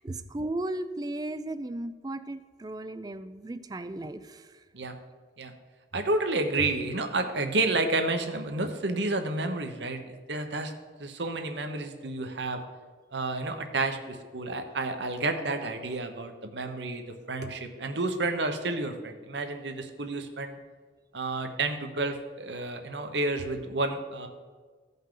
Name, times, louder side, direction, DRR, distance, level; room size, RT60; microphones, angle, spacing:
voice 1, 0.0-4.5, right 1 dB, 20° right, 11 dB, 0.4 m, -35 dB
voice 2, 5.9-10.7 11.0-12.6 13.1-20.6 21.1-24.3, right 2 dB, 80° right, 6 dB, 1.0 m, -30 dB
15.5 x 5.5 x 3.8 m, 1.5 s
head